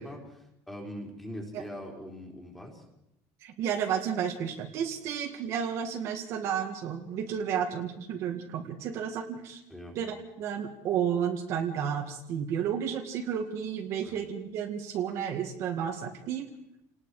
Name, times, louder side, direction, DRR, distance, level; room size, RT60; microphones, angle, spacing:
voice 1, 0.0-2.8 9.7-10.0 14.0-14.2, equal, 5° left, 0 dB, 3.9 m, -42 dB
voice 2, 3.4-9.6 10.0-16.5, right 8 dB, 45° right, 3 dB, 1.9 m, -32 dB
29.5 x 19.5 x 4.9 m, 0.84 s
cardioid pair, 175°, 7 cm